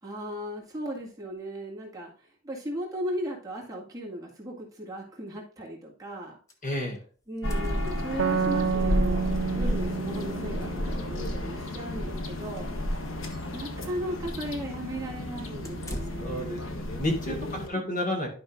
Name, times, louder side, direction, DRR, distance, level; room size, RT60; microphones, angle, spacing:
voice 1, 0.0-6.4 7.3-9.3 9.5-12.7 13.5-16.8 17.3-17.8, equal, 20° right, -3 dB, 1.9 m, -37 dB
sound 1, 6.5-6.7 6.9-7.0 7.2-8.5 9.8-9.9 10.2-10.3 10.8-11.8 12.3-12.5 13.0-13.5 15.6-16.5, equal, 15° left, 1.0 m, -44 dB
voice 2, 6.6-7.0 16.2-17.4 17.7-18.3, left 1 dB, 45° left, 1 dB, 2.0 m, -30 dB
sound 2, 7.4-17.7, left 1 dB, 85° left, 1.2 m, -32 dB
sound 3, 8.2-11.7, right 5 dB, 85° right, 0.5 m, -30 dB
11.5 x 5.3 x 2.5 m, 0.42 s
head